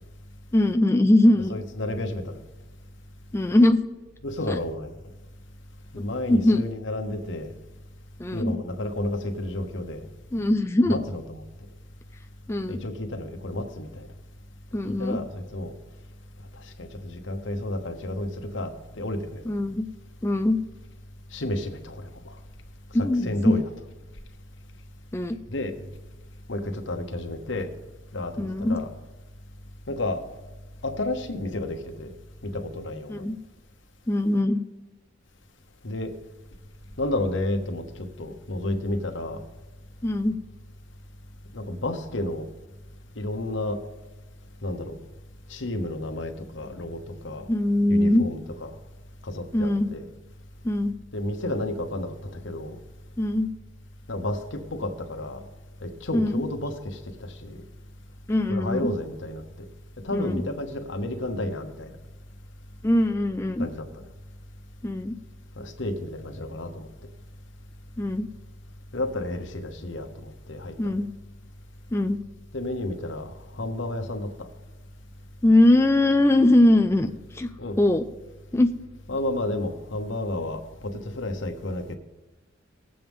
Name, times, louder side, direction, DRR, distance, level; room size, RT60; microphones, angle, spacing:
voice 1, 0.5-1.5 3.3-3.8 4.5-4.6 6.0-6.6 8.2-8.6 10.3-11.0 12.5-12.8 14.7-15.2 19.5-19.8 20.2-20.6 22.9-23.5 25.1-25.4 28.4-28.8 33.1-33.4 34.1-34.6 40.0-40.4 47.5-48.2 49.5-49.9 50.6-50.9 53.2-53.5 56.1-56.4 58.3-58.9 60.1-60.4 62.8-63.7 64.8-65.2 68.0-68.3 70.8-71.1 71.9-72.2 75.4-77.5 77.8-78.0 78.5-78.7, left 1 dB, 15° left, 7 dB, 0.4 m, -21 dB
voice 2, 1.5-2.4 4.2-4.9 5.9-7.5 8.3-10.0 10.9-11.4 12.7-14.1 14.8-15.7 16.8-19.4 21.3-22.3 23.0-23.6 25.5-25.7 26.5-27.7 28.1-28.9 29.9-30.2 30.8-32.1 32.4-33.2 35.8-36.1 37.0-39.4 41.5-42.5 43.2-43.8 44.6-45.0 45.5-47.5 47.9-48.7 49.2-50.1 51.1-52.8 54.1-55.4 55.8-57.6 58.5-59.7 60.0-61.9 63.6-64.0 65.6-66.9 68.9-71.0 72.5-74.5 77.6-77.8 79.1-82.0, left 1 dB, 80° left, 5 dB, 1.1 m, -31 dB
19.0 x 7.7 x 3.6 m, 1.1 s
head